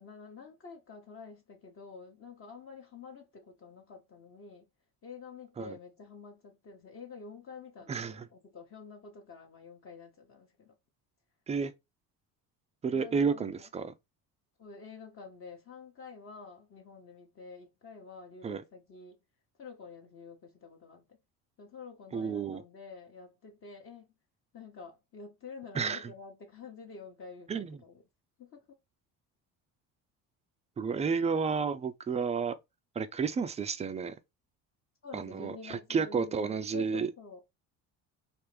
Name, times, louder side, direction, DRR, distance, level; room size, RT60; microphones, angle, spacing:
voice 1, 0.0-4.7 5.0-10.7 12.9-13.7 14.6-19.2 19.6-21.2 21.6-24.1 24.5-28.0 28.4-28.7 35.0-37.4, left 5 dB, 35° left, 0.8 m, -48 dB
voice 2, 7.9-8.2 11.5-11.7 12.8-13.9 18.4-18.6 22.1-22.6 25.7-26.1 27.5-27.8 30.8-32.6 33.0-34.2 35.1-37.1, right 5 dB, 20° right, 0.3 m, -31 dB
3.4 x 2.5 x 3.2 m
cardioid pair, 120°, 37 cm